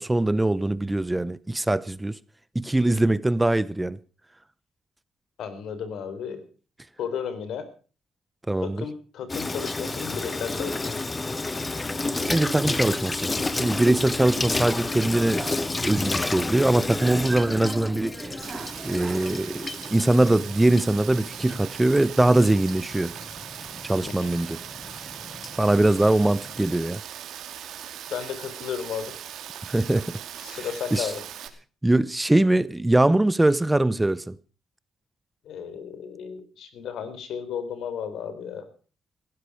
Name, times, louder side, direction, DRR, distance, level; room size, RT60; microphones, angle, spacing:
voice 1, 0.0-2.2 2.5-4.0 8.5-8.9 12.3-15.4 15.8-18.1 18.8-23.1 23.8-24.6 25.6-27.0 29.7-30.2 30.5-30.6 30.9-31.1 31.8-34.4, right 1 dB, 10° right, 0.7 m, -22 dB
voice 2, 5.4-6.4 7.0-7.6 8.6-11.0 24.0-24.3 28.1-29.1 30.4-31.2 35.4-38.7, left 7 dB, 75° left, 3.9 m, -34 dB
Water tap faucet / Sink (filling or washing), 9.3-26.8, left 3 dB, 20° left, 1.1 m, -32 dB
sound 1, 12.0-19.3, right 4 dB, 30° right, 2.1 m, -39 dB
Rain, 18.4-31.5, right 10 dB, 75° right, 2.6 m, -39 dB
17.0 x 15.5 x 4.9 m
cardioid pair, 90°, 0 cm